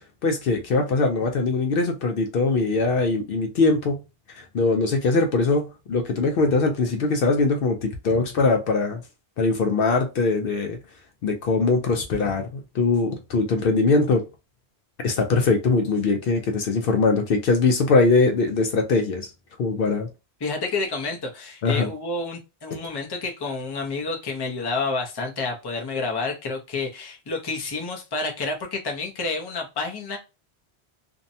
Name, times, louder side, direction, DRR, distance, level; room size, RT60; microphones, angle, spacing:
voice 1, 0.2-4.0 4.3-9.0 9.4-10.8 11.2-14.2 15.0-19.3 19.6-20.1 21.6-21.9, left 3 dB, 65° left, 0.7 m, -22 dB
voice 2, 20.4-30.2, left 3 dB, 30° left, 0.6 m, -29 dB
2.6 x 2.1 x 2.6 m
omnidirectional pair, 1.1 m